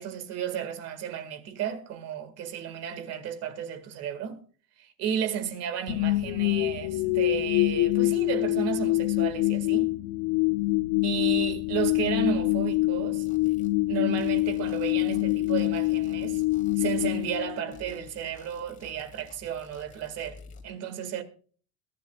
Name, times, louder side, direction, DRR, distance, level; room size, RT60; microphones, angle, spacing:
voice 1, 0.0-4.4 4.8-9.9 11.0-13.3 13.9-16.4 16.8-21.2, right 8 dB, 50° right, 2.1 m, -33 dB
sound 1, 5.9-18.0, left 19 dB, 60° left, 0.7 m, -26 dB
sound 2, 13.3-13.8 14.2-17.5 17.7-20.6, left 3 dB, 25° left, 2.1 m, -52 dB
22.0 x 11.5 x 2.4 m
cardioid pair, 145°, 32 cm